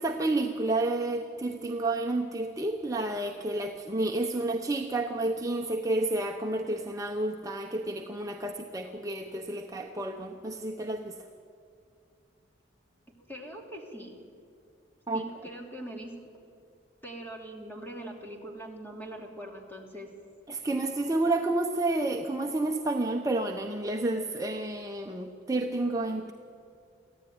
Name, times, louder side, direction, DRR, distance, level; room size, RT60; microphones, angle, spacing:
voice 1, 0.0-11.1 15.1-15.2 20.5-26.3, right 2 dB, 20° right, 2 dB, 0.9 m, -30 dB
voice 2, 13.3-14.2 15.1-16.1 17.0-20.1, right 1 dB, 10° left, 1 dB, 3.0 m, -42 dB
24.0 x 15.5 x 9.5 m, 2.5 s
head